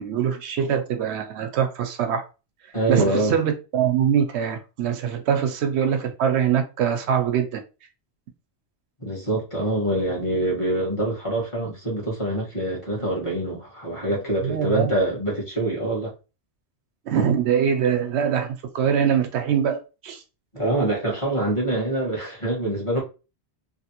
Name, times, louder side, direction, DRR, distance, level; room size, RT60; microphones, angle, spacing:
voice 1, 0.0-2.2 2.9-7.6 14.4-14.9 17.1-20.2, right 8 dB, 80° right, 0.8 m, -23 dB
voice 2, 2.7-3.3 9.0-16.1 20.5-23.0, right 1 dB, 30° left, 1.6 m, -25 dB
3.3 x 2.6 x 2.8 m
omnidirectional pair, 1.1 m